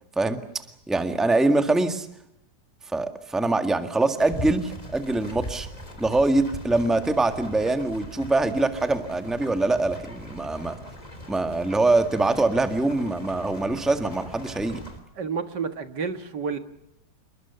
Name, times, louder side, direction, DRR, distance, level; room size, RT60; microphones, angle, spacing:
voice 1, 0.9-2.1 2.9-5.7 6.0-10.7 11.3-14.8, right 2 dB, ahead, 8 dB, 1.6 m, -23 dB
sound 1, 4.2-15.0, left 1 dB, 20° left, 3.5 m, -40 dB
voice 2, 15.2-16.6, right 5 dB, 70° right, 9 dB, 2.3 m, -30 dB
28.0 x 22.0 x 7.0 m, 0.80 s
omnidirectional pair, 2.0 m